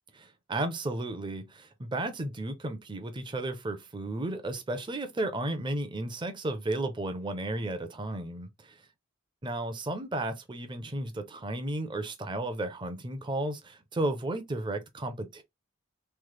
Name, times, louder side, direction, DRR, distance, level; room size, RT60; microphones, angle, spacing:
voice 1, 0.5-8.8 9.4-15.4, right 1 dB, 20° right, 0.5 m, -33 dB
3.1 x 2.0 x 3.1 m
head